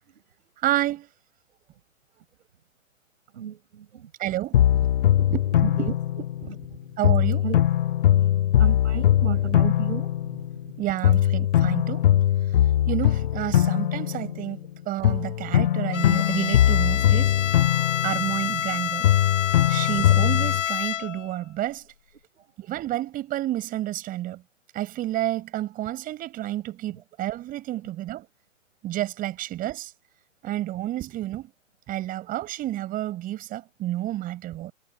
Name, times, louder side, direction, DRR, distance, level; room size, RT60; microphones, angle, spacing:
voice 1, 0.6-1.1 4.2-4.9 5.2-7.4 10.8-12.1 12.9-17.3 18.0-19.1 19.7-21.8 22.6-24.4 24.7-28.3 28.8-29.9 30.4-31.5 31.9-34.7, right 14 dB, 20° right, 7.4 m, -30 dB
voice 2, 3.3-4.1 5.6-6.0 7.4-7.6 8.6-10.4 19.6-19.8 22.3-22.7 27.7-27.8, right 9 dB, 55° right, 7.5 m, -34 dB
sound 1, 4.5-6.7 7.0-10.7 11.0-14.7 15.0-18.7 19.0-20.6, left 11 dB, 45° left, 0.5 m, -21 dB
Bowed string instrument, 15.9-21.3, left 10 dB, 65° left, 1.2 m, -28 dB
hypercardioid pair, 140°, 40 cm